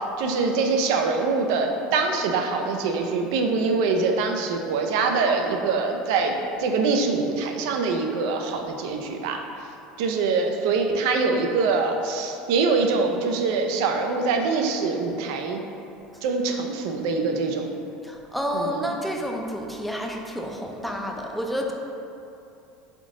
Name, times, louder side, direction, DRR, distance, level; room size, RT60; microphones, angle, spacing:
voice 1, 0.2-9.4 10.0-15.6 16.2-17.7 18.5-18.9, right 4 dB, 75° right, 4 dB, 0.5 m, -24 dB
voice 2, 18.0-21.7, equal, ahead, 0 dB, 0.4 m, -30 dB
3.7 x 3.6 x 3.6 m, 2.7 s
supercardioid pair, 135°, 3 cm